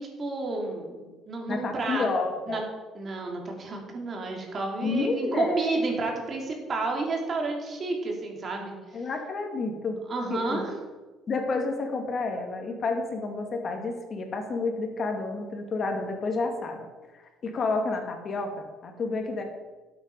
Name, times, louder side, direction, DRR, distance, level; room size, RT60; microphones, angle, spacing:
voice 1, 0.0-2.1 2.5-2.6 2.9-8.8 10.1-10.8, right 3 dB, 40° right, 1 dB, 3.2 m, -31 dB
voice 2, 1.5-2.6 4.8-5.7 8.9-10.0 10.3-10.6 11.3-16.9 17.1-19.4, left 3 dB, 45° left, 4 dB, 2.4 m, -30 dB
11.5 x 8.3 x 5.6 m, 1.3 s
cardioid pair, 100°, 0 cm